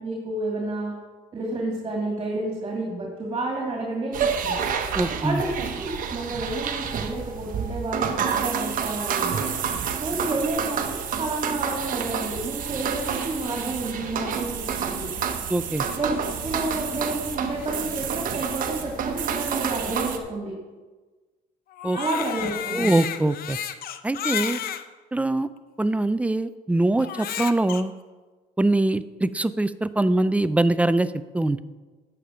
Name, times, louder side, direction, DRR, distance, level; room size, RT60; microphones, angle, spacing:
voice 1, 0.0-1.0 1.3-4.6 5.2-9.5 10.0-15.1 15.9-20.6 22.0-23.0, right 2 dB, 30° right, -1 dB, 2.2 m, -30 dB
sound 1, 4.1-20.2, right 7 dB, 55° right, 1.0 m, -29 dB
voice 2, 4.9-5.4 15.5-15.9 21.8-22.0 22.7-23.6 24.0-24.6 25.1-25.5 25.8-27.9 28.6-31.6, right 2 dB, 10° right, 14 dB, 0.3 m, -23 dB
sound 2, 13.0-18.1, left 5 dB, 85° left, 1.4 m, -45 dB
Crying sobbing, 21.7-24.8 25.6-25.7 27.0-27.8, left 9 dB, 60° left, 0.6 m, -31 dB
10.0 x 7.1 x 5.0 m, 1.3 s
cardioid pair, 110°, 17 cm